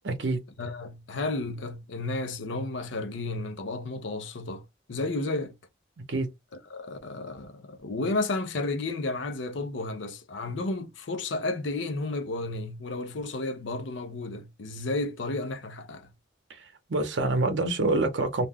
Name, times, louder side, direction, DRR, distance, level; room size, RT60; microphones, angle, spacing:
voice 1, 0.0-0.4 6.1-6.3 16.9-18.5, right 2 dB, 75° right, 0.7 m, -26 dB
voice 2, 0.6-5.6 6.7-16.1, left 2 dB, 80° left, 0.6 m, -32 dB
2.4 x 2.2 x 3.4 m
head